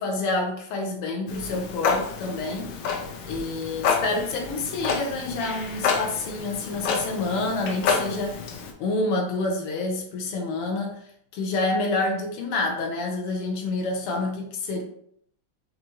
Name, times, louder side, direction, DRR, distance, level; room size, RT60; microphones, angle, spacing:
voice 1, 0.0-2.8 3.3-8.4 8.8-11.0 11.3-14.8, left 2 dB, 90° left, 2 dB, 1.8 m, -28 dB
Clock, 1.3-8.7, left 5 dB, 75° left, 1.3 m, -29 dB
5.0 x 2.8 x 2.9 m, 0.68 s
omnidirectional pair, 2.4 m